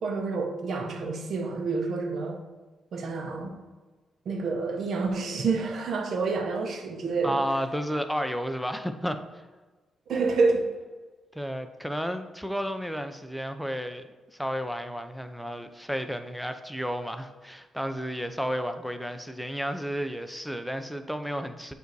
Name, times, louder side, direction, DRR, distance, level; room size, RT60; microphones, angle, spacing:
voice 1, 0.0-2.4 2.9-3.5 4.3-7.4 10.1-10.7, right 4 dB, 65° right, 0.8 m, -28 dB
voice 2, 7.2-9.4 11.3-14.0 14.3-21.7, equal, ahead, 0.5 m, -32 dB
7.9 x 2.7 x 4.6 m
cardioid pair, 65°, 0 cm